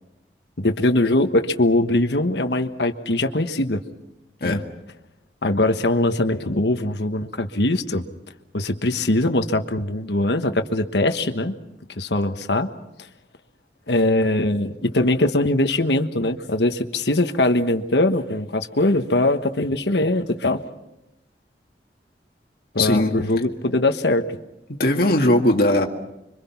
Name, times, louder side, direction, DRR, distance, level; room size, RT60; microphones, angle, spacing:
voice 1, 0.6-3.8 4.4-4.6 5.4-8.0 8.5-11.5 12.0-12.7 13.9-20.6 22.7-24.3, left 2 dB, 70° left, 8 dB, 1.4 m, -21 dB
voice 2, 22.8-23.2 24.7-25.9, left 1 dB, 55° left, 2 dB, 1.9 m, -19 dB
26.5 x 24.5 x 5.8 m, 0.91 s
head